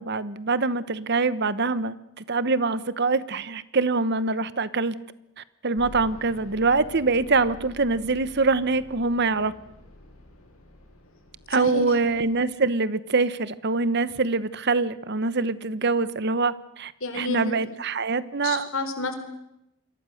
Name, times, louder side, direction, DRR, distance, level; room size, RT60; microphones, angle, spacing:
voice 1, 0.0-5.0 5.6-9.5 11.5-16.9 17.2-18.7, right 3 dB, 50° right, 16 dB, 1.1 m, -24 dB
sound 1, 5.8-12.5, left 1 dB, 85° left, 7.7 m, -47 dB
voice 2, 11.5-12.0 17.0-17.7 18.4-19.1, left 2 dB, 70° left, 8 dB, 4.0 m, -30 dB
28.0 x 23.0 x 6.6 m, 0.87 s
head